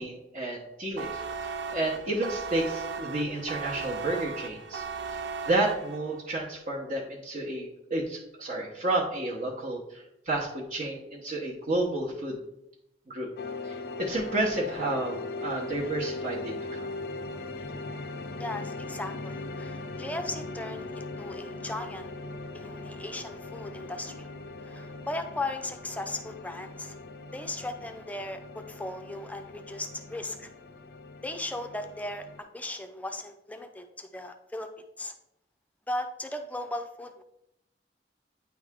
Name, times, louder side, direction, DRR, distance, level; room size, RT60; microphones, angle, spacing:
voice 1, 0.0-4.8 5.1-12.4 13.1-13.3 13.6-16.9, right 2 dB, 50° right, -5 dB, 1.0 m, -31 dB
sound 1, 1.0-6.2, right 5 dB, 80° right, 0.5 m, -37 dB
sound 2, 13.4-32.4, left 3 dB, 60° left, 0.4 m, -39 dB
voice 2, 18.4-22.1 22.5-24.3 24.6-27.0 27.3-30.5 31.2-34.7 35.0-35.1 35.9-37.2, left 2 dB, 10° left, 6 dB, 0.5 m, -37 dB
9.4 x 3.5 x 3.5 m, 0.82 s
head